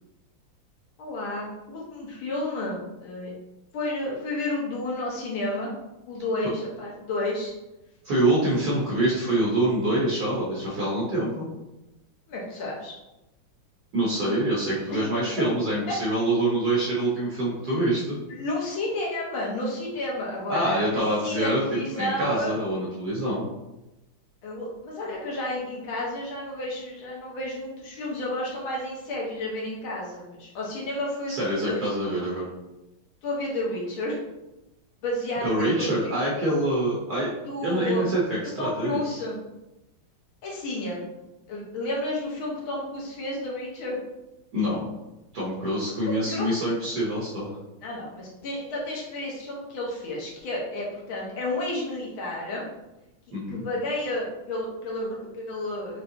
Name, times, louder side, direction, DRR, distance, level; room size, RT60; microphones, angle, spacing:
voice 1, 1.0-3.3 3.7-5.7 6.1-7.5 12.3-12.9 14.9-15.0 15.9-16.0 18.3-20.8 21.2-22.5 24.4-31.9 33.2-34.2 35.0-35.9 37.4-38.0 38.6-39.4 40.4-41.0 41.5-44.0 46.0-46.5 47.8-52.6 53.5-56.0, left 1 dB, 75° left, -3 dB, 1.9 m, -31 dB
voice 2, 8.0-11.4 13.9-18.2 20.5-21.6 22.0-23.5 31.3-32.5 35.4-37.3 37.6-39.2 44.5-44.9 45.3-47.5 53.3-53.7, right 1 dB, 55° right, -5 dB, 1.4 m, -25 dB
5.5 x 3.3 x 2.7 m, 0.97 s
omnidirectional pair, 2.3 m